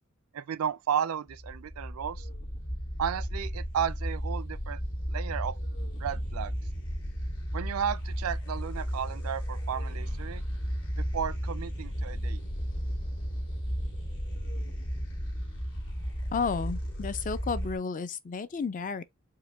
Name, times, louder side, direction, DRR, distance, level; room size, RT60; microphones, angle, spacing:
voice 1, 0.3-2.3 3.0-4.8 5.1-5.6 6.0-6.6 7.5-10.4 11.0-12.4, right 8 dB, 80° right, 0.4 m, -33 dB
sound 1, 1.3-17.8, equal, 65° left, 1.9 m, -34 dB
voice 2, 16.3-19.0, left 5 dB, 40° left, 0.4 m, -32 dB
4.8 x 2.1 x 3.4 m
head